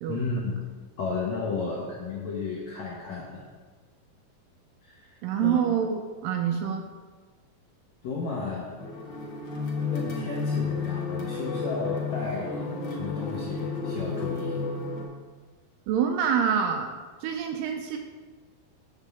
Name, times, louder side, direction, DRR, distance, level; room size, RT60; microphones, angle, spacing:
voice 1, 0.1-0.6 1.0-3.5 4.8-5.6 8.0-8.9 9.8-14.6, left 4 dB, 75° left, -4 dB, 1.6 m, -33 dB
voice 2, 5.2-6.8 15.9-16.9 17.2-18.0, right 8 dB, 85° right, 4 dB, 2.0 m, -26 dB
sound 1, 8.8-15.0, left 4 dB, 55° left, 1.8 m, -31 dB
8.3 x 3.7 x 6.8 m, 1.4 s
omnidirectional pair, 4.4 m